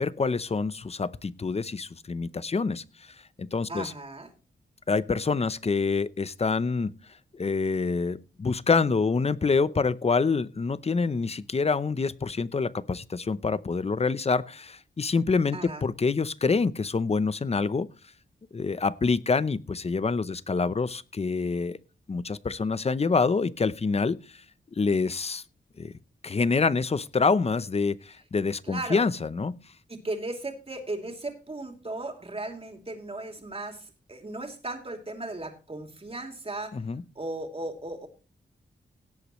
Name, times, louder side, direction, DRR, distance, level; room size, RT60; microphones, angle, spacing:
voice 1, 0.0-2.8 3.4-3.9 4.9-6.9 7.3-17.9 18.5-21.8 22.1-24.2 24.8-25.4 25.8-25.9 26.2-29.6 36.7-37.0, left 4 dB, 35° left, 17 dB, 0.6 m, -26 dB
voice 2, 3.7-4.3 15.5-15.8 28.6-29.0 29.9-36.8 37.1-38.1, right 2 dB, 30° right, 4 dB, 2.9 m, -36 dB
17.5 x 8.3 x 3.1 m, 0.33 s
wide cardioid pair, 85°, 19 cm